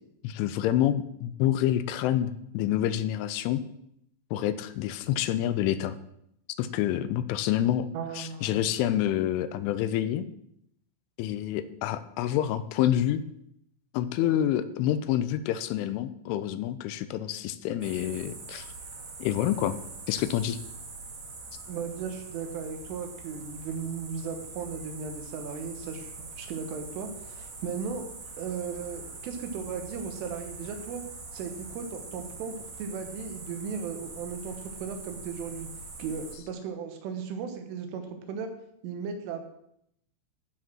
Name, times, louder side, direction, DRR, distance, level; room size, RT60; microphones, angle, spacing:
voice 1, 0.2-3.6 4.3-6.0 6.6-7.9 8.2-10.2 11.2-13.2 13.9-18.7 19.2-19.8 20.1-20.6, left 11 dB, 85° left, 13 dB, 3.1 m, -27 dB
voice 2, 7.9-8.6 21.7-28.0 28.4-31.0 31.3-35.7 36.0-38.0 38.3-38.5 38.8-39.5, right 6 dB, 85° right, 6 dB, 3.8 m, -36 dB
sound 1, 17.8-36.4, right 3 dB, 55° right, 3.4 m, -43 dB
14.0 x 4.9 x 6.2 m, 0.75 s
omnidirectional pair, 5.6 m